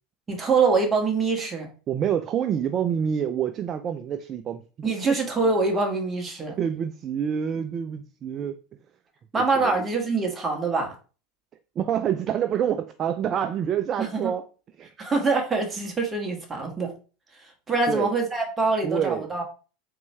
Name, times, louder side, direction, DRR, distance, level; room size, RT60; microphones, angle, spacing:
voice 1, 0.3-1.7 4.8-6.6 9.3-11.0 14.0-14.3 15.0-16.9 17.4-19.4, right 4 dB, 20° right, 1.3 m, -24 dB
voice 2, 1.9-4.6 5.0-5.2 6.6-8.6 9.6-9.8 11.8-14.5 14.8-14.9 17.9-18.1 18.8-19.4, right 8 dB, 40° right, 0.3 m, -27 dB
4.1 x 3.0 x 3.3 m
hypercardioid pair, 80°, 0 cm